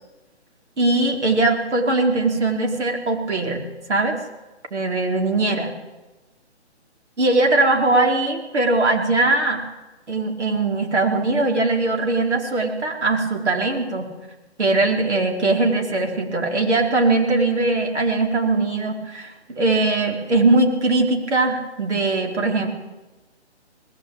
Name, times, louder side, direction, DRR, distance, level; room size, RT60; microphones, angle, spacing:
voice 1, 0.8-4.2 4.7-5.7 7.2-9.6 10.1-14.1 14.6-22.7, right 2 dB, 75° right, 2 dB, 4.7 m, -20 dB
20.0 x 17.5 x 8.8 m, 1.1 s
hypercardioid pair, 150°, 34 cm